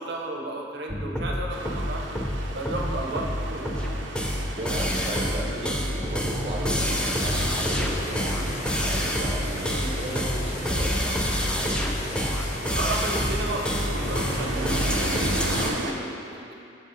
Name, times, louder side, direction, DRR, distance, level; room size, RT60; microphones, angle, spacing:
voice 1, 0.0-2.1 2.5-4.0 12.7-16.5, right 2 dB, 60° right, 0 dB, 0.9 m, -33 dB
sound 1, 0.9-15.7, equal, 5° left, 0.5 m, -27 dB
sound 2, 1.5-15.9, right 2 dB, 80° right, 0.6 m, -36 dB
voice 2, 4.6-8.7 9.1-11.3, right 1 dB, 30° right, -3 dB, 1.1 m, -35 dB
sound 3, 6.9-15.4, left 1 dB, 40° left, 0.9 m, -37 dB
6.7 x 5.4 x 4.9 m, 2.6 s
head